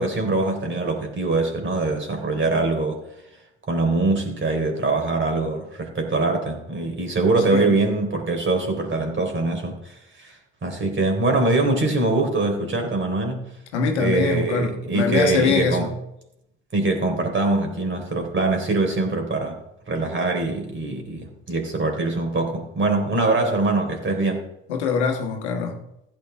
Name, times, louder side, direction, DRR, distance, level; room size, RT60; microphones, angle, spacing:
voice 1, 0.0-3.0 3.7-13.5 14.0-15.9 16.7-24.4, right 2 dB, 35° right, 3 dB, 3.7 m, -23 dB
voice 2, 13.7-15.9 24.7-25.8, left 5 dB, 85° left, 4 dB, 1.4 m, -23 dB
15.0 x 9.0 x 3.5 m, 0.83 s
hypercardioid pair, 55°, 33 cm